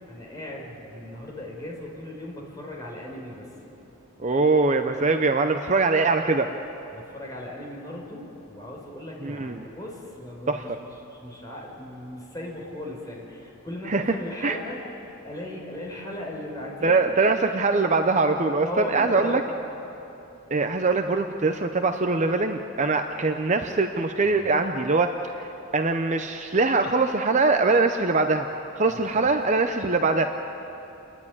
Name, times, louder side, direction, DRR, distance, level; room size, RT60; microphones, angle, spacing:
voice 1, 0.1-3.5 6.9-10.7 11.1-14.8 15.2-17.2 18.6-19.4 24.2-24.6 29.1-29.2, left 1 dB, 15° left, -2 dB, 4.4 m, -37 dB
voice 2, 4.2-6.5 9.2-9.7 10.5-10.6 13.9-14.2 14.4-14.6 16.8-19.4 20.5-25.5 25.7-28.5 28.8-30.3, right 3 dB, 35° right, 6 dB, 0.6 m, -22 dB
28.5 x 11.0 x 9.8 m, 2.9 s
head